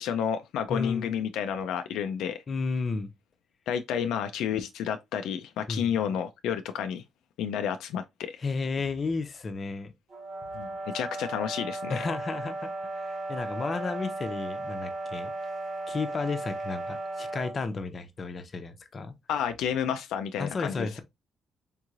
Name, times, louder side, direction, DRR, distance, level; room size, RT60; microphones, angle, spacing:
voice 1, 0.0-2.4 3.7-7.0 7.4-8.4 10.5-12.1 19.3-20.9, left 8 dB, 85° left, 0.3 m, -30 dB
voice 2, 0.7-1.2 2.5-3.1 5.7-6.0 8.4-9.9 11.9-12.7 13.0-15.3 15.9-19.1 20.4-21.0, left 4 dB, 40° left, 0.6 m, -33 dB
sound 1, 10.1-17.6, right 2 dB, 60° right, 1.5 m, -36 dB
3.6 x 3.0 x 2.4 m
cardioid pair, 90°, 0 cm